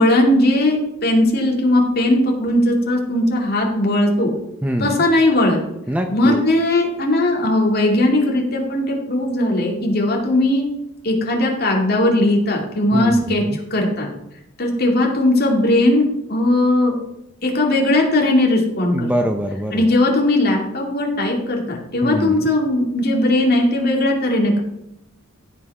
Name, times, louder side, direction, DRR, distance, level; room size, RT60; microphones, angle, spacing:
voice 1, 0.0-4.3 4.8-5.6 6.1-10.7 11.0-13.4 13.7-14.1 14.6-16.0 16.3-17.0 17.4-19.1 19.7-24.6, left 1 dB, 45° left, 0 dB, 2.4 m, -18 dB
voice 2, 4.6-5.1 5.9-6.4 12.9-13.6 18.9-19.9 22.0-22.5, equal, 5° right, 4 dB, 0.5 m, -23 dB
15.0 x 5.9 x 4.8 m, 0.84 s
head